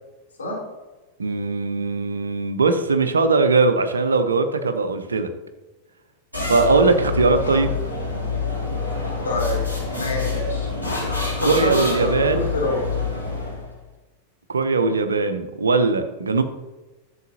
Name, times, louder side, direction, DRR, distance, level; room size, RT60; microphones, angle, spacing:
voice 1, 1.2-5.3 6.5-7.8 11.4-12.5 14.5-16.4, right 3 dB, 75° right, 8 dB, 0.8 m, -20 dB
sound 1, 6.3-13.7, left 4 dB, 90° left, 3.2 m, -26 dB
voice 2, 9.2-9.6 9.9-10.7 11.4-12.8, left 2 dB, 70° left, -4 dB, 3.2 m, -26 dB
12.0 x 7.2 x 2.8 m, 1.1 s
figure-of-eight pair, 90°, 0 cm